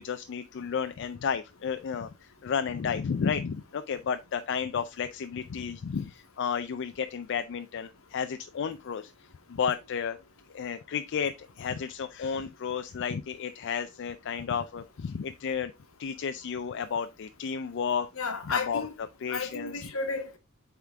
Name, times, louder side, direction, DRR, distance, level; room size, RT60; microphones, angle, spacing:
voice 1, 0.0-2.1 2.4-9.1 9.5-10.2 10.5-15.7 16.0-18.1 18.5-18.9 19.2-19.8, left 6 dB, 60° left, 0.4 m, -32 dB
voice 2, 18.2-18.9 19.3-20.4, left 4 dB, 80° left, 1.2 m, -33 dB
8.0 x 3.7 x 3.4 m
head